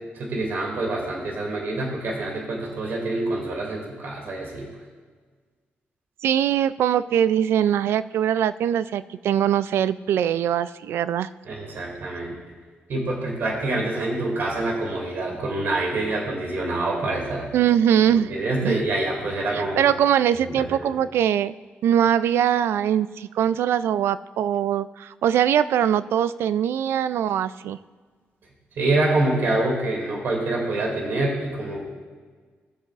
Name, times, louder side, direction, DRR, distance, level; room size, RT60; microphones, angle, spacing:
voice 1, 0.1-4.7 11.5-12.4 12.9-17.5 18.1-19.8 20.4-20.9 28.8-31.8, right 2 dB, 60° right, -2 dB, 2.6 m, -26 dB
voice 2, 6.2-11.3 17.5-18.3 18.6-18.8 19.5-21.5 21.8-27.8, right 10 dB, 80° right, 15 dB, 0.3 m, -22 dB
18.5 x 7.8 x 2.5 m, 1.5 s
wide cardioid pair, 145°, 4 cm